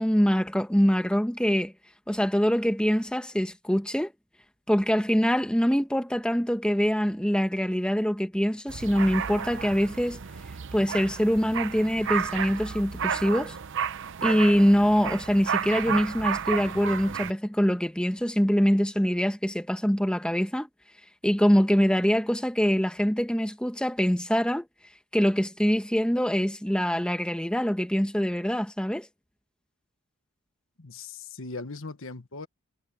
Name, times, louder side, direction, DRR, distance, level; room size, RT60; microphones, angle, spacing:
voice 1, 0.0-1.7 2.1-4.1 4.7-10.2 10.7-13.6 14.2-20.7 21.2-24.6 25.1-29.1, equal, 5° left, 1.3 m, -24 dB
sound 1, 8.7-17.3, right 7 dB, 60° right, 0.7 m, -32 dB
voice 2, 30.8-32.5, left 3 dB, 65° left, 1.4 m, -39 dB
head